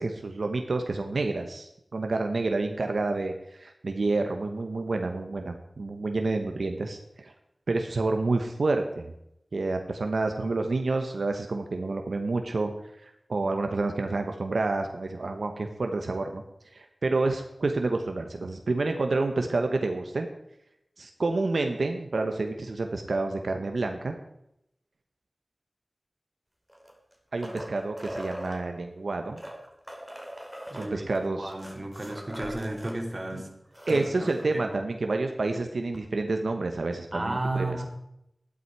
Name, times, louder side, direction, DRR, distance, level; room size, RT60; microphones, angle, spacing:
voice 1, 0.0-7.3 7.7-9.1 9.5-12.7 13.0-16.4 16.7-20.3 21.0-24.1 27.3-29.4 30.7-31.5 33.3-33.4 33.9-37.8, right 3 dB, 90° right, 5 dB, 1.0 m, -29 dB
sound 1, 26.7-28.6 29.3-33.0 33.3-33.4 33.7-34.4 35.9-36.0, equal, 5° right, 2.9 m, -41 dB
voice 2, 30.7-33.5 33.9-34.8 37.1-37.9, right 2 dB, 40° right, 2 dB, 2.9 m, -34 dB
12.5 x 11.5 x 4.7 m, 0.81 s
wide cardioid pair, 45°, 0 cm